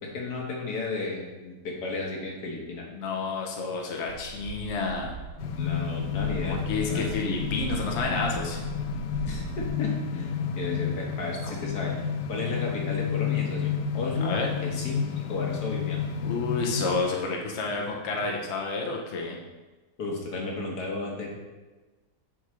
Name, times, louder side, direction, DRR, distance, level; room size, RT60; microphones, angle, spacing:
voice 1, 0.0-2.9 5.6-7.1 9.3-11.9 12.3-16.0 20.0-21.3, left 3 dB, 65° left, -1 dB, 1.8 m, -33 dB
voice 2, 2.9-5.1 6.4-8.6 14.2-14.5 16.2-19.4, left 4 dB, 50° left, -1 dB, 1.0 m, -30 dB
sound 1, 4.1-9.7, right 4 dB, 65° right, 1.0 m, -39 dB
sound 2, 5.4-17.0, left 7 dB, 85° left, 1.3 m, -31 dB
8.2 x 6.2 x 3.2 m, 1.2 s
omnidirectional pair, 1.9 m